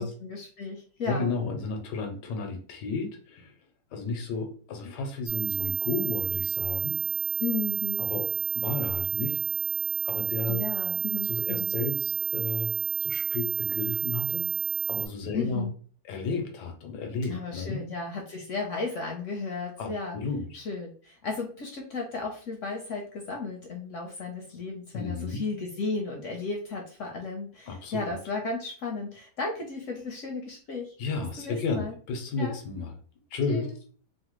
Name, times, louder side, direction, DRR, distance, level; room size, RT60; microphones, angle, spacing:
voice 1, 0.0-1.3 7.4-8.0 10.5-11.7 15.3-15.7 17.3-20.2 20.5-30.9 31.4-32.0 32.4-32.5 33.5-33.7, left 4 dB, 70° left, 1 dB, 0.7 m, -34 dB
voice 2, 1.0-3.5 3.9-7.0 8.0-8.3 8.5-9.4 10.0-10.6 11.2-12.7 13.0-14.5 14.9-15.7 16.1-17.8 19.8-20.6 24.9-25.4 27.7-28.0 31.0-32.9 33.3-33.7, left 4 dB, 90° left, 4 dB, 1.3 m, -32 dB
sound 1, 5.3-15.1, right 18 dB, 70° right, 0.7 m, -30 dB
3.2 x 2.1 x 3.0 m, 0.43 s
omnidirectional pair, 1.8 m